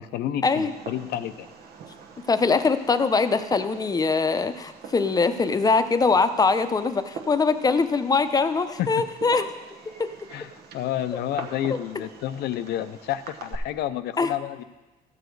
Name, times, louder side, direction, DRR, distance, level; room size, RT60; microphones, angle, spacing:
voice 1, 0.0-1.5 8.8-8.9 10.3-14.6, left 11 dB, 75° left, 12 dB, 0.5 m, -30 dB
Fireworks, 0.6-13.6, right 5 dB, 65° right, 1.2 m, -44 dB
voice 2, 2.3-9.5 10.0-10.1 14.2-14.3, left 4 dB, 20° left, 11 dB, 0.7 m, -22 dB
13.5 x 7.0 x 4.7 m, 1.2 s
cardioid pair, 110°, 17 cm